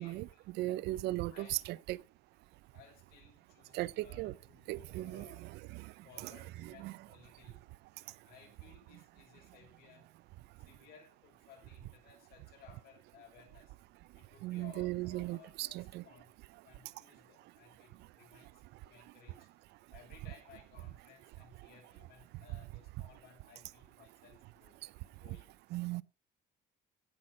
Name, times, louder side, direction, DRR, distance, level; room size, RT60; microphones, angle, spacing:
voice 1, 0.0-0.8 1.3-1.6 2.7-5.4 6.0-7.6 8.2-10.1 10.6-13.8 14.1-16.4 16.6-19.5 19.9-24.8 25.1-25.6, left 6 dB, 70° left, 6.5 m, -60 dB
voice 2, 0.6-1.5 1.9-2.0 3.7-4.3 4.7-5.3 5.7-5.9 6.8-6.9 14.4-16.0 25.7-26.0, right 17 dB, 80° right, 0.5 m, -37 dB
16.5 x 6.2 x 5.2 m
cardioid pair, 110°, 17 cm